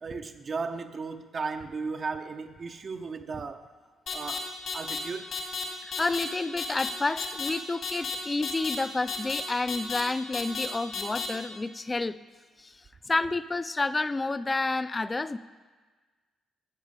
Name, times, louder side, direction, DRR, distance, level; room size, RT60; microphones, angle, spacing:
voice 1, 0.0-3.7 4.1-5.4, right 4 dB, 40° right, 6 dB, 0.5 m, -36 dB
sound 1, 4.1-4.4 4.7-5.0 5.3-5.6 5.9-6.2 6.6-6.9 7.2-7.5 7.8-8.1 8.4-8.7 9.1-9.4 9.7-10.0 10.3-10.7 10.9-11.3, left 5 dB, 65° left, 2.3 m, -32 dB
voice 2, 5.8-12.2 12.6-15.4, left 3 dB, 25° left, 15 dB, 0.4 m, -30 dB
12.0 x 7.3 x 5.2 m, 1.4 s
cardioid pair, 90°, 0 cm